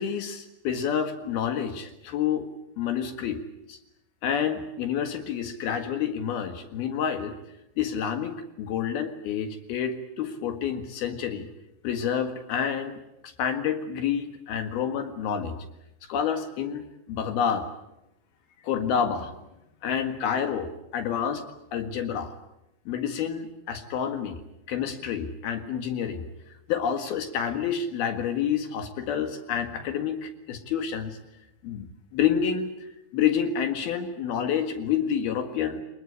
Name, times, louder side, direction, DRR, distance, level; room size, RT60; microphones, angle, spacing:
voice 1, 0.0-2.5 2.8-3.4 3.7-3.8 4.2-7.4 7.8-11.5 11.8-13.0 13.2-15.6 16.1-17.7 18.6-19.3 19.8-21.4 21.7-22.3 22.9-24.4 24.7-26.2 26.7-31.2 31.6-35.8, left 8 dB, 80° left, 6 dB, 3.7 m, -28 dB
26.5 x 20.5 x 8.3 m, 0.87 s
omnidirectional pair, 4.3 m